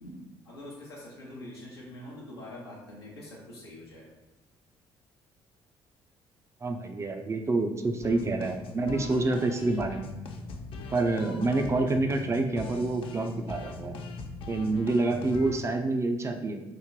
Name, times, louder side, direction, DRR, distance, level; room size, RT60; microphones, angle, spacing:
voice 1, 0.0-4.1 8.7-8.9, left 1 dB, 85° left, -6 dB, 0.6 m, -44 dB
voice 2, 6.6-10.1 10.9-14.0 14.5-16.6, right 2 dB, 20° right, 5 dB, 0.4 m, -27 dB
sound 1, 8.0-15.6, left 3 dB, 45° left, 0.4 m, -41 dB
3.1 x 2.1 x 3.7 m, 1.0 s
figure-of-eight pair, 45°, 13 cm